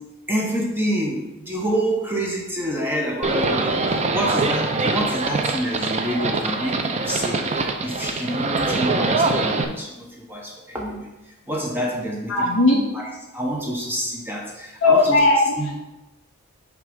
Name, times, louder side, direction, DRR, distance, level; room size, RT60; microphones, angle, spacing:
voice 1, 0.3-7.4 7.8-12.3 12.7-15.2 15.6-15.7, equal, 10° right, -1 dB, 0.8 m, -27 dB
Livestock farm animals working animals, 3.2-9.6, right 3 dB, 30° right, 0.4 m, -23 dB
voice 2, 12.3-12.8 14.8-15.4 15.7-15.8, left 2 dB, 60° left, -3 dB, 2.1 m, -17 dB
6.6 x 3.7 x 5.2 m, 1.0 s
head